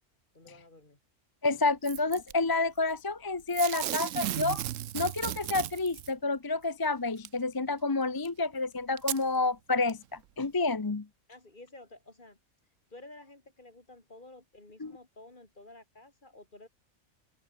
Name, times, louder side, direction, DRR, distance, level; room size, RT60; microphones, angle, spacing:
voice 1, 0.3-1.0 11.3-12.4 12.9-16.7, left 2 dB, 40° left, 3.8 m, -52 dB
voice 2, 1.4-4.6 4.9-11.1 14.8-14.9, left 3 dB, 25° left, 0.6 m, -29 dB
Packing tape duct tape / Tearing, 1.8-2.3 3.5-6.1 7.2-7.3 8.2-8.3 9.0-9.2 9.9-10.0, right 12 dB, 90° right, 1.0 m, -35 dB
open air
omnidirectional pair, 1.3 m